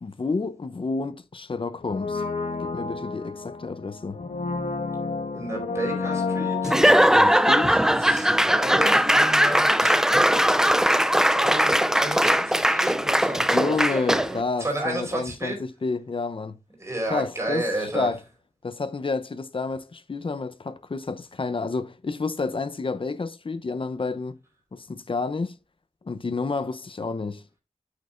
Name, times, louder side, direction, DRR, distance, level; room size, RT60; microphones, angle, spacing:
voice 1, 0.0-2.2 2.6-4.2 7.1-7.8 13.5-16.6 17.1-18.2 18.6-24.4 24.7-25.6 26.0-27.4, left 4 dB, 45° left, 0.8 m, -30 dB
Brass instrument, 1.8-8.7 8.9-9.0, left 4 dB, 70° left, 1.4 m, -31 dB
voice 2, 5.3-6.8 8.0-10.0 11.3-15.6 16.8-18.1, right 1 dB, 20° right, 4.3 m, -32 dB
Laughter / Applause / Crowd, 6.6-14.4, equal, 5° right, 0.4 m, -20 dB
8.5 x 8.4 x 2.5 m
wide cardioid pair, 95°, 13 cm